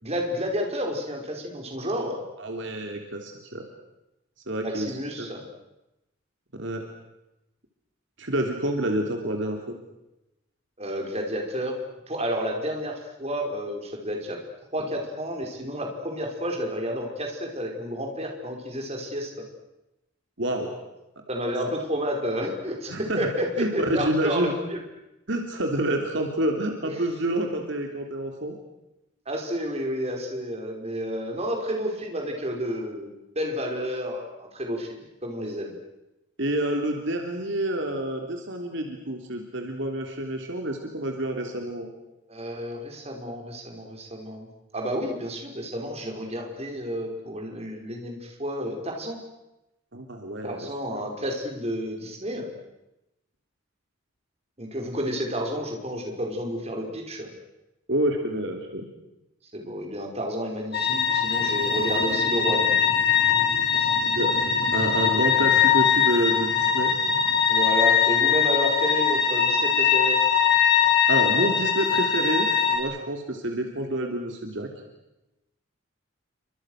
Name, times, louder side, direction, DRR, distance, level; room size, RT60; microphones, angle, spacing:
voice 1, 0.0-2.2 4.6-5.4 10.8-11.8 12.1-14.4 14.7-19.4 21.3-24.8 26.8-27.0 29.3-35.8 42.3-44.5 44.7-49.2 50.4-52.5 54.6-57.3 59.5-63.1 63.8-63.9 67.5-70.2, equal, 30° right, 2 dB, 5.3 m, -31 dB
voice 2, 2.4-3.6 4.5-5.3 6.6-6.8 8.2-9.8 20.4-20.7 22.9-23.3 23.6-24.5 25.3-28.6 36.4-41.9 49.9-50.7 57.9-58.8 64.0-64.3 64.7-66.9 71.1-74.7, right 1 dB, 65° right, 3 dB, 3.2 m, -28 dB
sound 1, 60.7-72.8, left 7 dB, 55° left, 5.6 m, -21 dB
30.0 x 25.0 x 6.6 m, 0.95 s
head